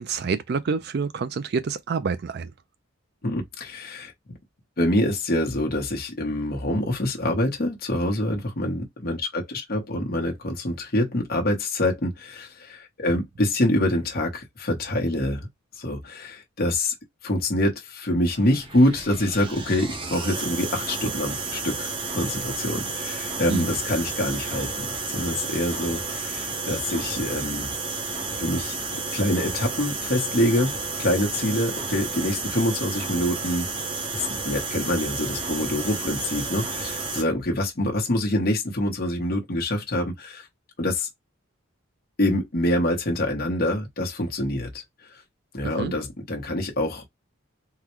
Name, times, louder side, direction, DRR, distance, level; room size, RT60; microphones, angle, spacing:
voice 1, 0.0-2.5 23.5-23.7 45.6-45.9, right 5 dB, 50° right, 0.4 m, -27 dB
voice 2, 3.2-4.1 4.8-15.5 15.8-16.9 17.2-27.7 28.4-28.8 29.1-30.7 31.0-33.7 34.1-40.5 40.8-41.1 42.2-44.7 45.5-47.0, left 1 dB, 45° left, 1.0 m, -25 dB
sound 1, 18.3-37.2, right 3 dB, 25° right, 0.8 m, -31 dB
3.8 x 2.2 x 3.0 m
head